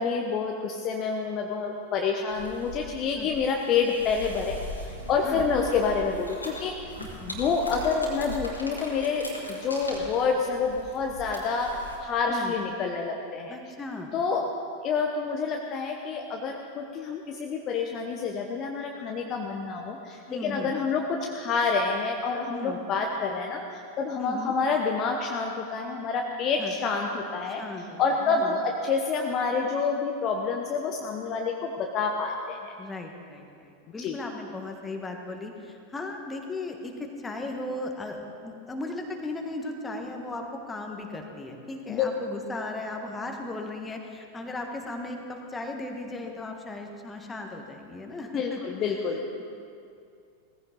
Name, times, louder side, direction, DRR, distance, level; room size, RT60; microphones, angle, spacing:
voice 1, 0.0-6.8 7.3-13.6 14.1-14.4 14.8-27.6 28.0-32.7 34.0-34.2 41.9-42.1 48.3-49.3, left 5 dB, 35° left, 2 dB, 1.0 m, -28 dB
sound 1, 2.3-12.0, equal, 85° left, 2.4 m, -40 dB
voice 2, 7.0-7.3 12.3-12.5 13.5-14.1 20.3-20.7 22.5-22.8 24.2-24.6 26.6-26.7 27.6-28.6 32.8-48.6, left 2 dB, 15° left, 2 dB, 1.6 m, -36 dB
18.0 x 15.0 x 4.1 m, 2.4 s
figure-of-eight pair, 90°, 0 cm